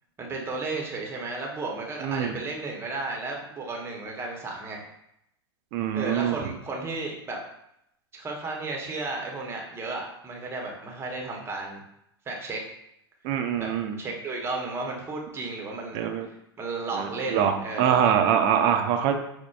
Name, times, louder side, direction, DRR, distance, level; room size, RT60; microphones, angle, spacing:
voice 1, 0.2-4.9 5.9-7.4 8.1-11.8 12.3-12.6 13.6-13.7 14.0-16.1 16.6-18.0, right 3 dB, 20° right, 0 dB, 0.8 m, -33 dB
voice 2, 2.0-2.4 5.7-6.4 13.2-14.0 15.9-16.3 16.9-19.2, right 8 dB, 45° right, 5 dB, 0.5 m, -24 dB
6.0 x 2.1 x 2.3 m, 0.79 s
figure-of-eight pair, 90°, 13 cm